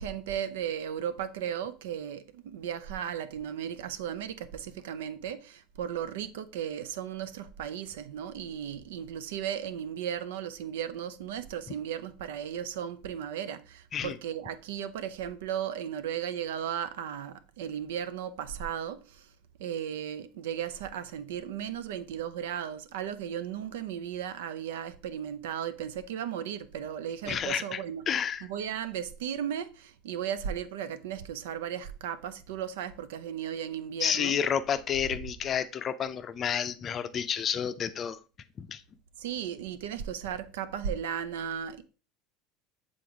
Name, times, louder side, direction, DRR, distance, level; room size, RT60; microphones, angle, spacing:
voice 1, 0.0-19.3 19.6-28.0 28.5-34.3 39.2-41.8, right 9 dB, 65° right, 0.5 m, -35 dB
voice 2, 27.3-28.5 34.0-38.2 38.6-38.8, left 8 dB, 35° left, 0.5 m, -30 dB
7.6 x 3.8 x 3.5 m
figure-of-eight pair, 75°, 0 cm